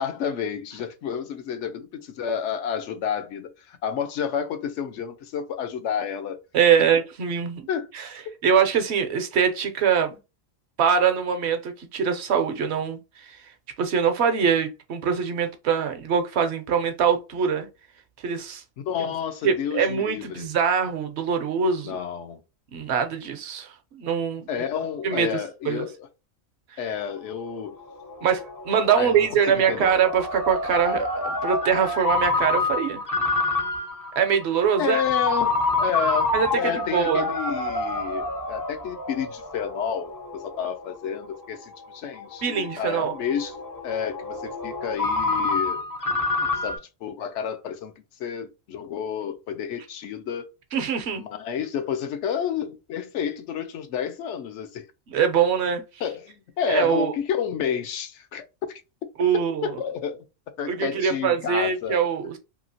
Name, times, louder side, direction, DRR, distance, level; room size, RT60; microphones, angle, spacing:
voice 1, 0.0-6.4 7.7-7.9 18.8-20.5 21.8-22.4 24.5-26.1 26.8-27.8 28.9-30.0 34.8-43.6 43.8-45.8 46.6-47.9 48.2-50.5 51.2-54.9 56.0-58.8 59.6-60.2 60.6-62.0, left 8 dB, 70° left, 0.8 m, -30 dB
voice 2, 6.5-7.6 7.9-8.1 8.4-10.2 10.8-13.4 13.8-17.7 18.2-18.6 19.4-22.0 22.7-23.7 24.0-24.5 25.0-25.3 25.6-25.9 28.2-33.0 34.2-35.0 36.3-37.3 42.4-43.1 50.7-51.2 55.1-55.8 56.7-57.1 59.2-59.7 60.7-62.4, right 7 dB, 60° right, 0.8 m, -23 dB
Ringtone, 27.0-46.8, left 3 dB, 30° left, 0.4 m, -28 dB
2.9 x 2.7 x 2.7 m
omnidirectional pair, 1.4 m